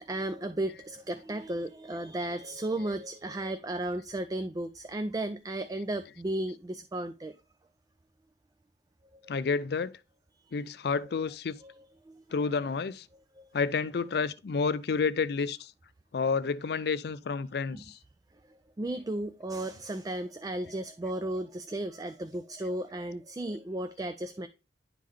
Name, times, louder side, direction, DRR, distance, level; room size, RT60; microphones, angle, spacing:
voice 1, 0.0-7.3 9.1-9.4 11.6-11.7 12.0-12.2 13.4-13.5 17.7-17.8 18.8-24.5, right 1 dB, 20° right, 0.4 m, -34 dB
voice 2, 9.3-10.0 10.5-11.6 12.3-13.1 13.5-15.7 16.1-18.0, left 5 dB, 60° left, 0.4 m, -30 dB
10.5 x 3.7 x 3.3 m
head